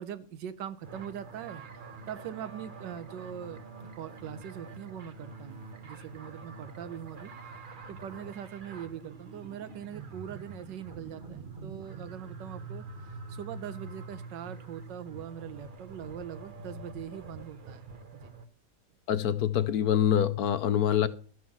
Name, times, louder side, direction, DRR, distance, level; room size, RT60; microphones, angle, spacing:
voice 1, 0.0-1.6 2.1-3.6 3.9-5.6 5.8-7.3 7.9-12.8 13.1-17.9 18.1-18.3, right 9 dB, 80° right, 1.5 m, -42 dB
sound 1, 0.8-18.4, right 3 dB, 35° right, 1.0 m, -45 dB
voice 2, 19.1-21.1, left 10 dB, 65° left, 1.0 m, -25 dB
13.0 x 6.1 x 7.2 m
omnidirectional pair, 1.9 m